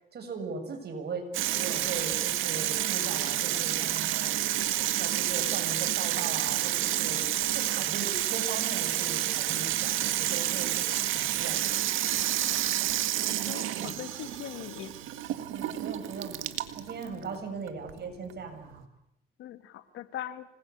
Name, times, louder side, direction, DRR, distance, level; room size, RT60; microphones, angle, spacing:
voice 1, 0.1-4.5 5.0-7.3 7.5-10.8 11.1-11.6 13.7-14.0 15.5-16.4 16.8-18.8, right 4 dB, 55° right, 5 dB, 7.1 m, -39 dB
Water tap faucet / Sink (filling or washing), 1.3-18.8, right 13 dB, 85° right, 1.8 m, -30 dB
voice 2, 13.3-14.9 19.4-20.5, left 11 dB, 90° left, 11 dB, 1.9 m, -41 dB
26.5 x 20.5 x 8.5 m, 0.77 s
cardioid pair, 90°, 20 cm